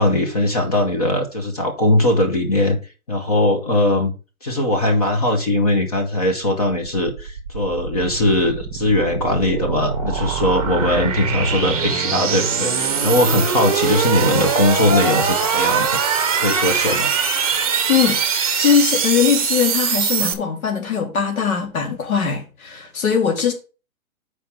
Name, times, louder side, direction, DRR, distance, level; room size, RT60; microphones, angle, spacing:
voice 1, 0.0-2.8 3.1-4.1 4.4-16.0 16.4-17.1, left 1 dB, 25° left, 0.8 m, -20 dB
sound 1, 6.7-20.3, right 6 dB, 25° right, 0.8 m, -22 dB
voice 2, 17.9-23.5, left 7 dB, 75° left, 2.3 m, -20 dB
6.9 x 4.8 x 5.6 m
hypercardioid pair, 175°, 43 cm